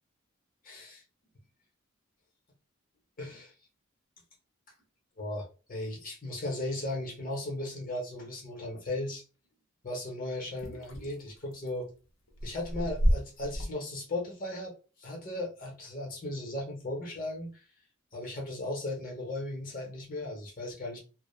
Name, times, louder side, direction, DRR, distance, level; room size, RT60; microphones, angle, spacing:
voice 1, 0.6-1.0 3.2-3.5 5.2-9.2 9.8-11.9 12.4-14.7 15.0-17.6 18.1-21.0, left 1 dB, 40° left, -1 dB, 0.8 m, -36 dB
sound 1, 10.6-11.7 12.3-13.7, equal, 80° left, 0.6 m, -29 dB
2.1 x 2.0 x 3.0 m, 0.34 s
head